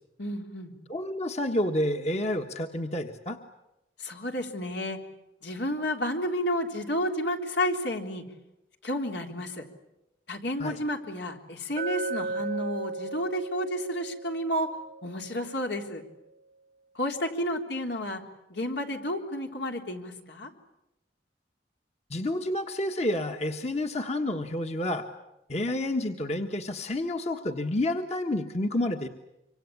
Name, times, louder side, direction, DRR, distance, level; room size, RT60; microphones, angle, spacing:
voice 1, 0.2-0.7 4.0-5.0 5.4-8.3 8.8-9.7 10.3-14.7 15.0-16.0 17.0-18.2 18.5-20.5, equal, 80° left, 3 dB, 3.5 m, -31 dB
voice 2, 0.9-3.4 10.6-10.8 22.1-25.1 25.5-29.1, left 1 dB, 40° left, 4 dB, 1.5 m, -29 dB
Glass, 11.8-15.9, right 3 dB, 55° right, 1.0 m, -36 dB
26.0 x 25.5 x 8.6 m, 0.91 s
head